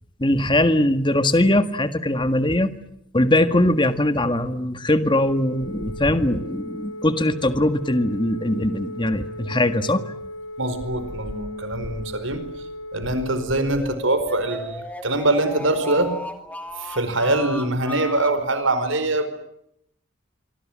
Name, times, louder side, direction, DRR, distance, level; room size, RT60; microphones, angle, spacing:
voice 1, 0.2-2.7 3.1-10.0, left 1 dB, 25° left, 10 dB, 1.7 m, -21 dB
Telephone, 5.1-13.4, left 1 dB, 90° left, 5.1 m, -37 dB
voice 2, 10.6-12.4 12.9-16.1 16.8-19.3, right 2 dB, 80° right, 10 dB, 4.9 m, -23 dB
sound 1, 13.4-18.4, left 1 dB, 10° left, 2.5 m, -36 dB
25.5 x 25.5 x 7.5 m, 0.75 s
head